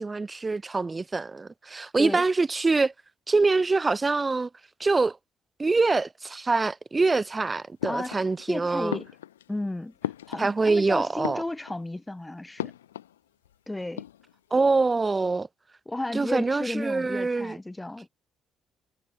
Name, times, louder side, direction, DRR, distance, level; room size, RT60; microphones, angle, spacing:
voice 1, 0.0-2.9 3.3-4.5 4.8-5.2 5.6-9.0 10.4-11.4 14.5-15.5 16.1-17.6, right 3 dB, 30° right, 0.4 m, -25 dB
sound 1, 7.8-8.5 8.9-10.8 11.1-12.0 12.6-13.2 13.4-13.5 13.8-14.5, left 12 dB, 90° left, 0.3 m, -36 dB
voice 2, 7.8-8.2 8.5-9.1 9.5-9.9 10.3-12.7 13.7-14.0 15.9-18.1, left 2 dB, 15° left, 1.4 m, -33 dB
hypercardioid pair, 45°, 0 cm